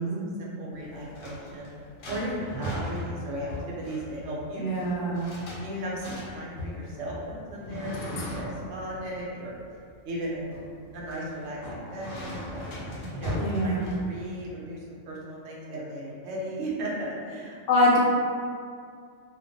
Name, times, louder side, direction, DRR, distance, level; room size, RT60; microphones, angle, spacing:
voice 1, 0.0-1.7 2.1-5.2 5.6-9.5 10.0-10.5 10.9-12.7 13.1-17.6, right 1 dB, 75° right, -4 dB, 0.9 m, -36 dB
sound 1, 0.7-14.4, equal, 55° left, 0.7 m, -38 dB
voice 2, 4.5-5.3 13.4-13.9 17.7-18.0, left 1 dB, 85° left, -5 dB, 1.0 m, -24 dB
2.4 x 2.2 x 2.5 m, 2.2 s
omnidirectional pair, 1.3 m